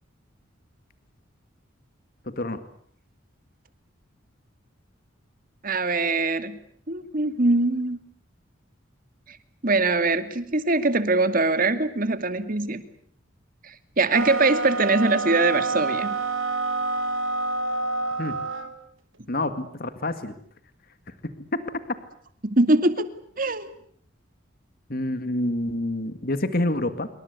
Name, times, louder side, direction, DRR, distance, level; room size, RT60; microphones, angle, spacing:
voice 1, 2.3-2.6 18.2-18.4 19.3-20.3 21.5-21.6 24.9-27.1, left 1 dB, 50° left, 11 dB, 2.0 m, -27 dB
voice 2, 5.6-6.6 6.9-8.0 9.3-9.4 9.6-12.8 13.6-16.1 22.4-23.1 23.4-23.7, right 2 dB, 45° right, 11 dB, 2.4 m, -22 dB
sound 1, 14.1-18.7, right 3 dB, 85° right, 3.4 m, -27 dB
27.0 x 24.0 x 8.3 m, 0.63 s
head